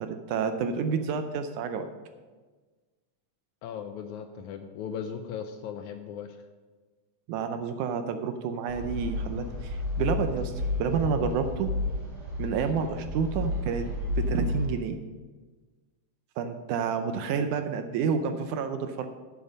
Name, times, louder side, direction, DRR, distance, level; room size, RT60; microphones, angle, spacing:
voice 1, 0.0-1.9 7.3-10.5 10.8-11.7 12.4-15.0 16.4-19.1, right 6 dB, 75° right, 8 dB, 1.9 m, -29 dB
voice 2, 3.6-6.4, left 7 dB, 80° left, 7 dB, 1.8 m, -37 dB
sound 1, 8.7-14.7, left 2 dB, 40° right, 4.3 m, -31 dB
11.0 x 7.2 x 5.3 m, 1.3 s
omnidirectional pair, 3.8 m